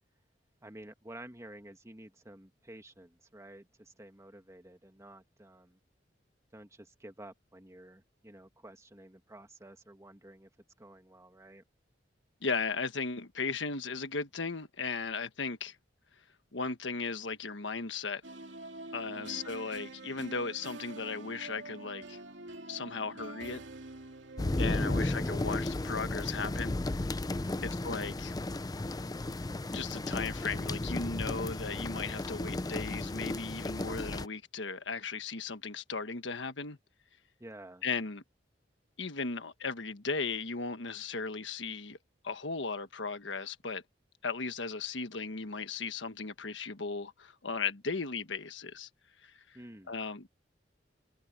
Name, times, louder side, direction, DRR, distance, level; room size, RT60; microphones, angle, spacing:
voice 1, 0.6-5.8 6.5-10.5 10.8-11.6 19.1-19.5 24.7-25.1 27.4-27.8 37.4-37.9 49.5-49.9, right 1 dB, 15° right, 1.8 m, -51 dB
voice 2, 12.4-15.8 16.5-18.2 18.9-22.2 22.7-23.6 24.6-26.8 27.6-28.3 29.7-36.8 37.8-38.2 39.0-42.0 42.2-43.8 44.2-48.9 49.2-49.6 49.9-50.3, left 4 dB, 80° left, 1.4 m, -36 dB
sound 1, 18.2-25.6, right 2 dB, 75° right, 2.8 m, -46 dB
sound 2, 24.4-34.3, left 2 dB, 20° left, 0.5 m, -34 dB
head